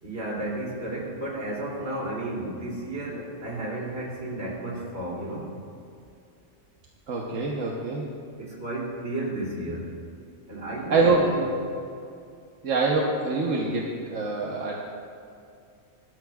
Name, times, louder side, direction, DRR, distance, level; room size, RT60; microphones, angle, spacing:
voice 1, 0.0-5.5 8.4-9.9 10.5-11.5, right 1 dB, 60° right, -4 dB, 3.3 m, -33 dB
voice 2, 7.1-8.1 10.9-11.3 12.6-14.8, right 3 dB, 85° right, -2 dB, 1.5 m, -25 dB
20.0 x 13.0 x 2.4 m, 2.4 s
omnidirectional pair, 1.3 m